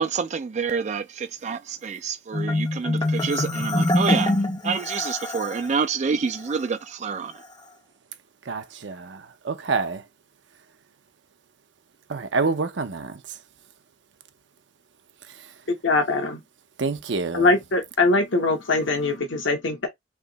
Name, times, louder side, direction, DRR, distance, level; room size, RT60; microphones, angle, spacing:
voice 1, 0.0-4.3 4.6-7.3, right 5 dB, 40° right, 0.3 m, -27 dB
Marimba xylophone, 2.3-5.7, left 1 dB, 20° left, 0.8 m, -24 dB
voice 2, 8.5-10.0 12.1-13.2 16.8-17.5, right 4 dB, 70° right, 0.6 m, -27 dB
voice 3, 15.8-16.4 17.3-19.9, left 3 dB, 85° left, 1.0 m, -22 dB
3.4 x 2.8 x 3.9 m
head